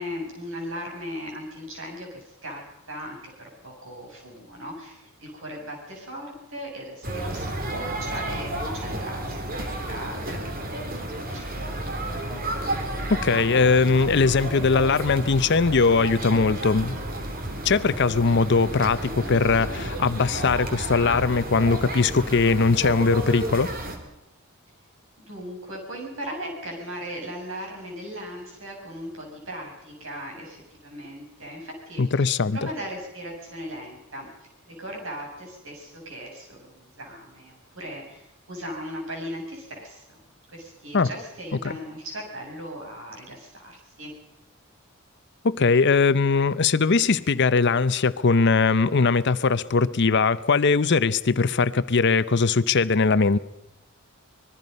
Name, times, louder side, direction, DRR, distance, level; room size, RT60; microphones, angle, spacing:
voice 1, 0.0-2.6 2.9-10.9 11.1-12.0 25.2-34.3 34.6-40.2 40.5-44.1, equal, 60° right, 7.5 m, -38 dB
sound 1, 7.0-24.0, right 1 dB, 40° right, 3.0 m, -31 dB
voice 2, 13.1-17.0 17.6-23.7 32.0-32.6 40.9-41.1 45.4-53.4, left 4 dB, 50° left, 0.7 m, -20 dB
25.5 x 21.0 x 5.4 m
head